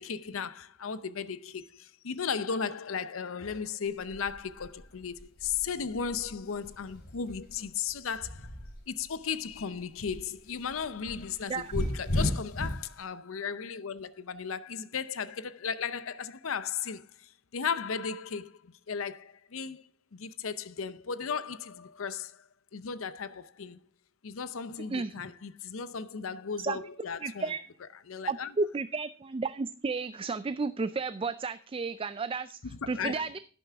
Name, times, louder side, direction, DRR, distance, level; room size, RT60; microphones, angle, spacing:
voice 1, 0.0-8.5 8.9-19.8 20.1-23.8 24.2-27.5 28.1-28.5 32.6-33.4, left 6 dB, 85° left, 0.6 m, -36 dB
sound 1, 3.8-9.1 9.5-12.9, left 1 dB, 50° left, 4.0 m, -36 dB
voice 2, 27.2-27.6 28.3-32.6 32.9-33.4, right 4 dB, 25° right, 0.4 m, -32 dB
11.5 x 9.3 x 3.5 m
head